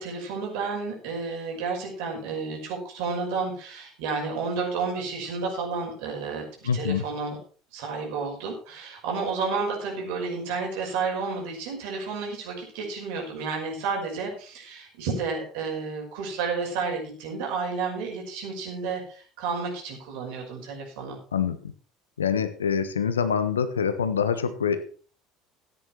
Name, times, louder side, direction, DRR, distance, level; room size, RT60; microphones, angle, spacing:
voice 1, 0.0-7.4 7.7-21.2, right 4 dB, 60° right, 0 dB, 5.8 m, -31 dB
voice 2, 6.6-7.0 21.3-21.7 22.2-24.8, left 7 dB, 80° left, 11 dB, 1.3 m, -25 dB
14.5 x 9.9 x 4.6 m, 0.42 s
figure-of-eight pair, 65°, 0 cm